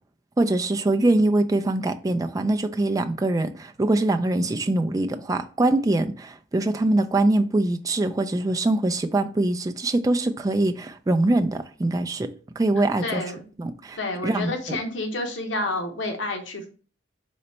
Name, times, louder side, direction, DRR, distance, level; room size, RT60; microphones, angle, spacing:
voice 1, 0.4-13.2 13.6-14.0 14.2-14.8, right 2 dB, 20° right, 0.3 m, -23 dB
voice 2, 13.0-13.4 14.0-16.7, left 2 dB, 85° left, 0.9 m, -29 dB
4.0 x 3.2 x 4.2 m
head